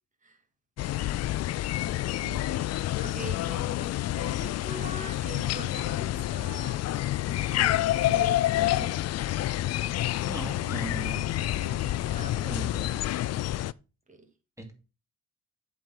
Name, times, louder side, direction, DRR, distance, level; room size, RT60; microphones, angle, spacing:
sound 1, 0.8-13.7, left 14 dB, 55° left, 0.4 m, -28 dB
voice 1, 2.2-2.6 3.0-6.8 7.3-8.9 11.3-12.6 14.1-14.3, right 3 dB, 25° right, 4 dB, 2.4 m, -43 dB
voice 2, 10.2-11.3 12.4-13.2 14.6-14.7, right 2 dB, 10° right, 3 dB, 2.5 m, -39 dB
7.9 x 5.0 x 5.8 m, 0.32 s
cardioid pair, 90°, 30 cm